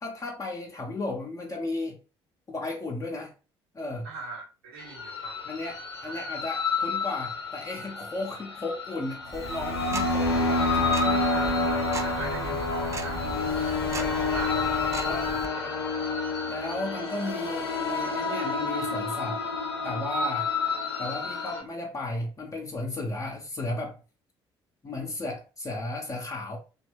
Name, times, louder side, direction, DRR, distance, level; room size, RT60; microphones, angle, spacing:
voice 1, 0.0-2.0 2.5-3.3 3.7-4.1 5.4-11.2 15.0-15.3 16.5-19.4 19.8-20.5 21.0-24.0 24.8-26.6, left 2 dB, 25° left, 0.6 m, -34 dB
voice 2, 4.0-5.4 6.1-6.2 11.3-14.7 15.5-15.7, right 3 dB, 70° right, 0.8 m, -41 dB
sound 1, 4.8-21.6, left 3 dB, 80° left, 0.5 m, -29 dB
Tick-tock, 9.3-15.5, right 4 dB, 20° right, 0.4 m, -39 dB
2.8 x 2.3 x 3.2 m
figure-of-eight pair, 50°, 13 cm